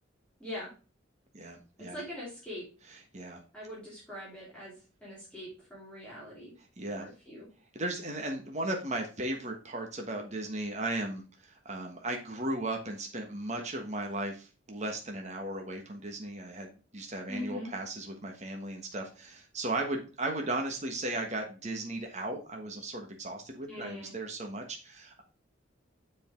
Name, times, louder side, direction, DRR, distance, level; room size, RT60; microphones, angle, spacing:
voice 1, 0.4-0.7 1.9-2.6 3.5-4.7 5.0-6.5 7.0-7.5 17.3-17.7 23.7-24.1, left 1 dB, 5° left, -8 dB, 3.1 m, -42 dB
voice 2, 1.3-2.0 3.1-3.4 6.8-7.1 7.7-25.2, right 2 dB, 35° right, 2 dB, 1.3 m, -36 dB
7.2 x 5.1 x 3.7 m, 0.34 s
head